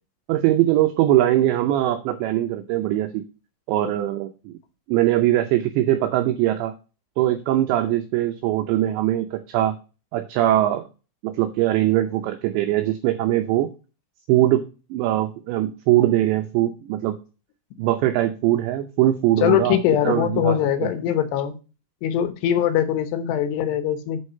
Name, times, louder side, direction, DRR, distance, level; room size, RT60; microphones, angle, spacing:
voice 1, 0.3-3.2 3.7-4.6 4.9-6.7 7.2-9.8 10.1-10.8 11.2-13.7 14.3-17.2 17.8-19.8 20.0-20.9, right 13 dB, 85° right, 7 dB, 2.5 m, -21 dB
voice 2, 19.4-21.5 22.0-24.2, left 10 dB, 75° left, 9 dB, 2.7 m, -22 dB
8.5 x 4.8 x 5.4 m, 0.32 s
omnidirectional pair, 6.0 m